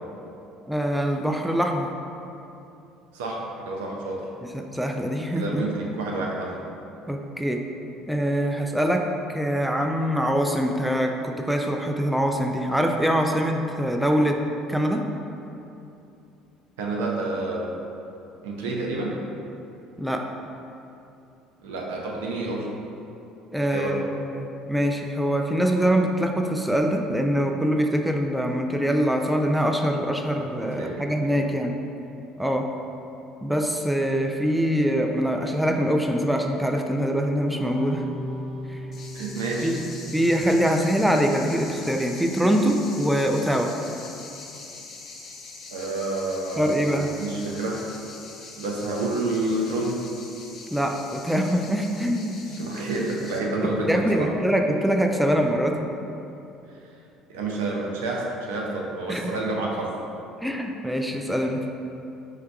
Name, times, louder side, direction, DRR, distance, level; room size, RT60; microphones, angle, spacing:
voice 1, 0.7-1.9 4.5-5.6 7.1-7.6 8.1-14.4 14.7-15.1 20.0-20.3 23.5-31.8 32.4-32.7 33.4-38.1 38.7-38.8 39.6-39.8 40.1-43.7 46.6-47.1 50.7-52.5 53.6-55.8 59.1-59.3 60.4-61.6, equal, 5° right, 3 dB, 0.3 m, -24 dB
voice 2, 3.1-4.3 5.3-6.6 16.8-17.7 18.4-19.2 21.6-22.7 23.6-24.0 30.6-31.4 39.1-39.7 45.7-47.9 48.6-50.0 52.5-54.3 57.3-59.9, right 2 dB, 75° right, -2 dB, 0.5 m, -29 dB
sound 1, 37.5-42.3, equal, 45° right, 0.8 m, -39 dB
sound 2, 38.9-53.4, left 3 dB, 45° left, 0.6 m, -43 dB
4.5 x 3.4 x 2.3 m, 2.8 s
hypercardioid pair, 60°, 0 cm